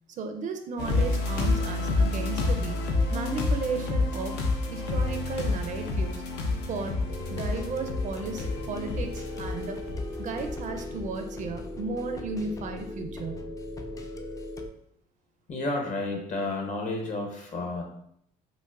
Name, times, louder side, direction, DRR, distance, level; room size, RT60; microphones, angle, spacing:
voice 1, 0.1-2.8 3.1-4.4 4.7-6.2 6.7-7.0 7.3-9.8 10.2-13.5, right 4 dB, 50° right, 6 dB, 0.4 m, -34 dB
sound 1, 0.8-11.0 11.5-11.6, left 3 dB, 80° left, 0.6 m, -29 dB
sound 2, 7.1-14.7, left 1 dB, 20° left, 0.3 m, -38 dB
voice 2, 15.5-17.8, left 2 dB, 45° left, 1 dB, 0.9 m, -31 dB
5.3 x 2.0 x 2.3 m, 0.71 s
cardioid pair, 110°, 17 cm